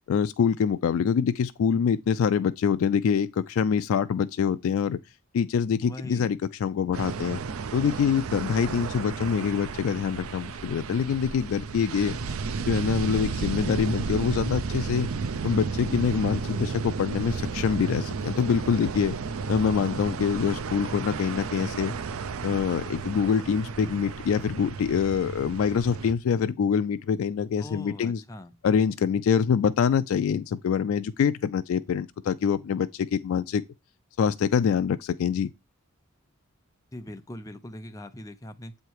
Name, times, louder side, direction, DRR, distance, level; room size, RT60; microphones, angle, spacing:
voice 1, 0.1-5.0 5.3-7.4 7.7-12.2 12.7-15.1 15.4-19.2 19.5-21.9 22.4-28.2 28.6-33.6 34.2-35.5, left 7 dB, 75° left, 0.3 m, -25 dB
voice 2, 5.8-6.4 27.6-28.5 36.9-38.8, left 1 dB, 15° left, 0.6 m, -41 dB
sound 1, 6.9-26.1, right 5 dB, 80° right, 0.5 m, -33 dB
7.5 x 3.2 x 4.6 m
head